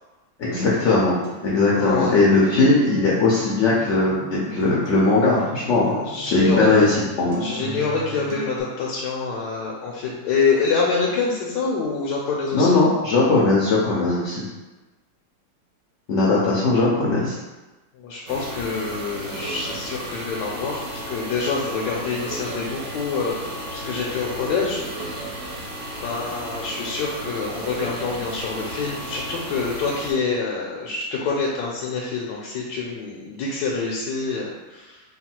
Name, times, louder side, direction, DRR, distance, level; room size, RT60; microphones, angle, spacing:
voice 1, 0.4-1.1 1.4-7.4 12.5-14.4 16.1-17.4, left 3 dB, 65° left, -5 dB, 0.7 m, -19 dB
Acoustic guitar, 0.6-8.6, equal, 85° right, 1.7 m, -36 dB
voice 2, 1.7-2.2 5.9-6.7 7.4-12.8 18.0-25.2 26.0-35.0, left 4 dB, 80° left, -3 dB, 1.2 m, -26 dB
sound 1, 18.3-30.1, right 1 dB, 55° right, 1.1 m, -34 dB
3.8 x 2.3 x 4.3 m, 1.2 s
omnidirectional pair, 2.0 m